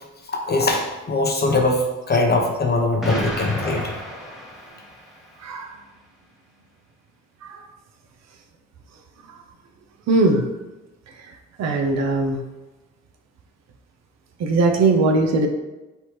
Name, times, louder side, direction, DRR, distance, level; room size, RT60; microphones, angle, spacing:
voice 1, 0.2-3.9, left 2 dB, 35° left, 1 dB, 0.8 m, -22 dB
Explosion, 3.0-5.2, equal, ahead, 1.0 m, -30 dB
voice 2, 5.4-5.7 7.5-7.6 10.1-10.4 11.6-12.4 14.4-15.5, right 3 dB, 60° right, 3 dB, 0.7 m, -19 dB
4.3 x 3.4 x 3.0 m, 1.1 s
cardioid pair, 90°, 30 cm